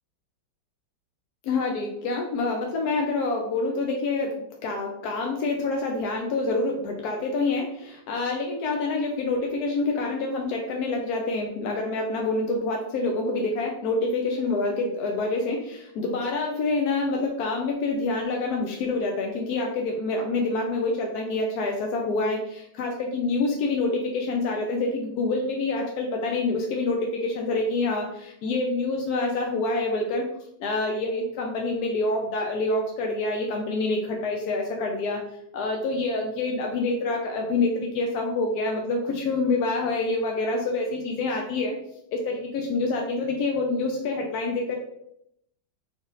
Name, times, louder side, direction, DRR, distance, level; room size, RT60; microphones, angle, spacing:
voice 1, 1.4-30.3 30.6-35.2 35.5-41.8 42.1-44.8, left 3 dB, 75° left, 1 dB, 0.9 m, -27 dB
4.0 x 3.6 x 2.4 m, 0.75 s
omnidirectional pair, 2.1 m